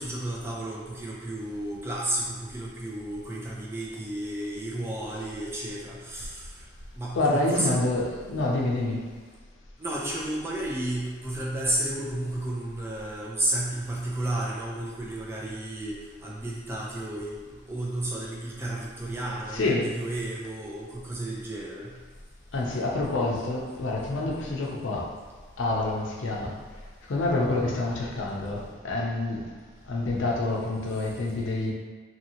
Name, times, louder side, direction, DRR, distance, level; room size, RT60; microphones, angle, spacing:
voice 1, 0.0-6.4 7.0-7.7 9.8-17.4 17.7-21.9, right 1 dB, 15° right, -4 dB, 0.4 m, -32 dB
voice 2, 7.1-9.1 19.5-19.9 22.5-25.1 25.6-26.6 27.1-29.5 29.9-31.7, left 2 dB, 80° left, -2 dB, 0.6 m, -27 dB
2.8 x 2.7 x 2.8 m, 1.5 s
head